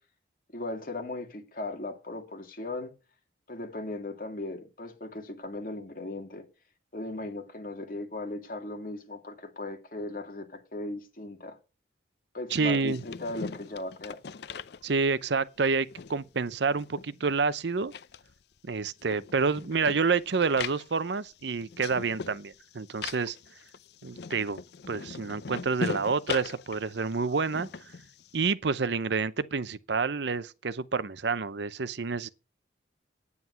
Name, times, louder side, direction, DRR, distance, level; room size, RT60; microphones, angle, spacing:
voice 1, 0.5-2.9 3.5-6.5 6.9-11.6 12.3-14.2, left 2 dB, 50° left, 2.3 m, -37 dB
voice 2, 12.5-13.0 14.8-17.9 18.6-23.4 24.0-24.6 24.9-27.7 28.3-32.3, right 4 dB, 70° right, 0.6 m, -28 dB
sound 1, 12.7-15.3 15.7-17.5 17.8-28.5, left 5 dB, 65° left, 0.5 m, -40 dB
9.7 x 9.5 x 5.6 m
head